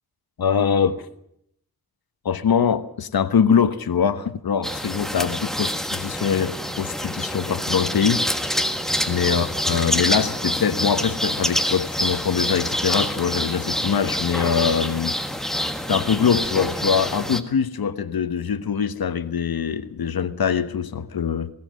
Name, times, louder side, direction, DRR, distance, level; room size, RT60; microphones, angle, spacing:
voice 1, 0.4-1.0 2.2-8.2 9.1-15.2 15.9-21.5, left 7 dB, 85° left, 1.2 m, -23 dB
sound 1, 4.6-17.4, equal, ahead, 1.5 m, -26 dB
20.0 x 18.5 x 7.6 m
wide cardioid pair, 140°, 35 cm